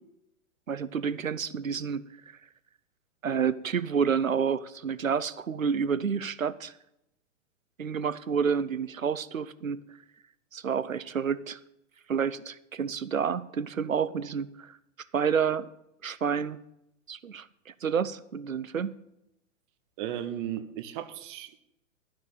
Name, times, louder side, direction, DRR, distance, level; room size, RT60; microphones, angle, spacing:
voice 1, 0.7-2.0 3.2-6.7 7.8-9.8 10.5-11.6 12.1-14.7 15.1-15.7 16.0-16.6 17.1-18.9, right 6 dB, 85° right, 15 dB, 0.8 m, -29 dB
voice 2, 20.0-21.6, right 11 dB, 40° right, 11 dB, 1.2 m, -35 dB
12.0 x 6.2 x 9.2 m, 0.83 s
figure-of-eight pair, 105°, 39 cm